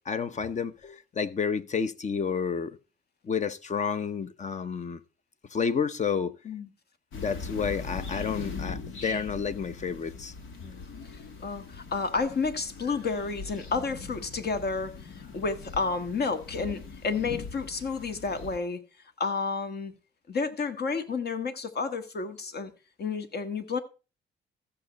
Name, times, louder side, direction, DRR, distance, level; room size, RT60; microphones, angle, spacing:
voice 1, 0.1-2.8 3.2-5.0 5.5-6.3 7.1-10.3, left 6 dB, 35° left, 0.8 m, -30 dB
sound 1, 7.1-18.6, left 4 dB, 80° left, 1.7 m, -41 dB
voice 2, 10.6-18.8 19.2-19.9 20.3-22.7 23.0-23.8, left 4 dB, 55° left, 1.5 m, -31 dB
14.5 x 6.7 x 4.1 m
cardioid pair, 90°, 20 cm